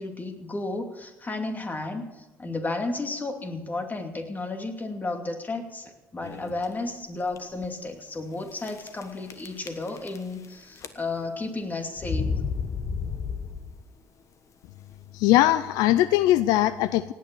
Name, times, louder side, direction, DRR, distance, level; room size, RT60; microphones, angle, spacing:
voice 1, 0.0-12.4, left 2 dB, 25° left, 5 dB, 2.6 m, -33 dB
sound 1, 6.2-6.7 7.3-7.4 7.6-7.7 8.6-9.0 9.3-10.5 10.8-11.3 12.0-13.9, left 5 dB, 50° left, 1.3 m, -31 dB
voice 2, 15.1-17.1, left 14 dB, 75° left, 16 dB, 0.4 m, -20 dB
17.5 x 9.2 x 7.0 m, 1.1 s
hypercardioid pair, 60°, 7 cm